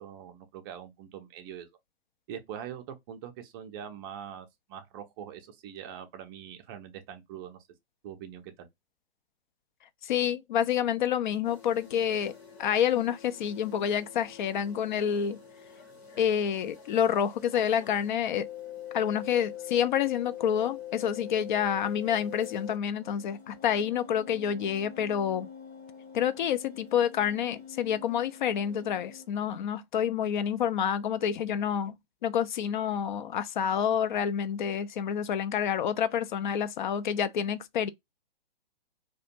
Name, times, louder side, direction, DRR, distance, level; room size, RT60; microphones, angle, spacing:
voice 1, 0.0-1.7 2.3-7.6 8.0-8.7, right 9 dB, 25° right, 0.4 m, -43 dB
voice 2, 10.0-12.3 12.6-15.4 16.2-18.5 18.9-25.5 26.1-32.0 32.2-37.9, left 8 dB, 55° left, 0.4 m, -28 dB
sound 1, 11.4-18.1 18.4-22.8 23.0-29.3, left 10 dB, 85° left, 1.1 m, -45 dB
2.4 x 2.2 x 2.7 m
figure-of-eight pair, 120°, 30 cm